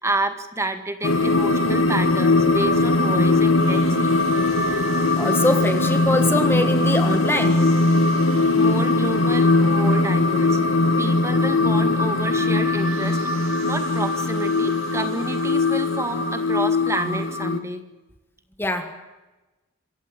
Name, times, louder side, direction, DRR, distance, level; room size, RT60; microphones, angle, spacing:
voice 1, 0.0-4.0 8.6-10.6 11.0-17.8, right 1 dB, 15° right, 8 dB, 1.9 m, -29 dB
sound 1, 1.0-17.6, left 2 dB, 65° left, 1.7 m, -20 dB
sound 2, 1.3-17.3, right 5 dB, 75° right, 5.9 m, -41 dB
voice 2, 5.2-7.6 18.6-18.9, left 1 dB, 10° left, 7 dB, 1.6 m, -23 dB
27.0 x 16.0 x 9.2 m, 1.1 s
head